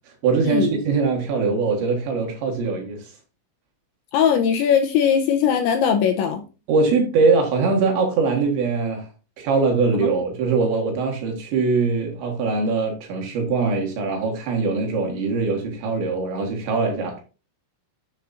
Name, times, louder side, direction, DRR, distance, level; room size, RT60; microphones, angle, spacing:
voice 1, 0.2-3.1 6.7-9.1 9.4-17.2, right 4 dB, 70° right, 3.7 m, -22 dB
voice 2, 4.1-6.4, left 8 dB, 80° left, 2.9 m, -19 dB
12.0 x 7.0 x 2.6 m
omnidirectional pair, 5.8 m